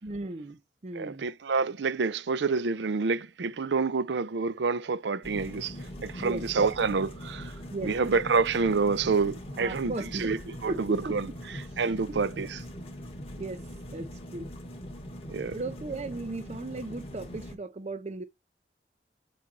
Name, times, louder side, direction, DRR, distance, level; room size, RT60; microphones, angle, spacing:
voice 1, 0.0-1.3 6.2-6.4 7.7-7.9 9.6-10.3 10.7-11.1 13.4-14.5 15.5-18.2, right 2 dB, 40° right, 0.5 m, -36 dB
voice 2, 0.9-5.7 6.0-7.5 7.8-11.3 11.8-12.6 15.3-15.6, right 4 dB, 80° right, 0.5 m, -28 dB
sound 1, 5.2-17.5, equal, 35° left, 2.1 m, -41 dB
7.5 x 3.9 x 4.1 m
head